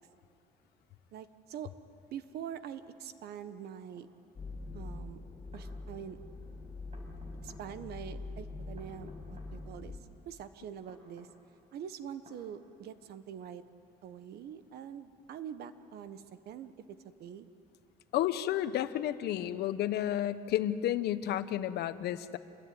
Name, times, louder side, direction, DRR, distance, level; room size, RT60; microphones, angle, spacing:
voice 1, 1.1-1.7 2.1-4.1 4.7-5.2 5.5-6.2 7.4-10.0 10.2-11.3 11.7-13.6 14.0-17.5, right 9 dB, 70° right, 12 dB, 1.3 m, -44 dB
sound 1, 4.0-4.1 5.2-5.7 6.9-7.7 8.8-9.5 10.9-11.3 12.2-12.4, equal, 40° right, 6.0 m, -58 dB
sound 2, 4.3-10.0, left 2 dB, 25° left, 5.3 m, -44 dB
voice 2, 18.1-22.4, left 12 dB, 75° left, 12 dB, 1.0 m, -31 dB
27.5 x 21.0 x 9.6 m, 2.5 s
cardioid pair, 110°, 17 cm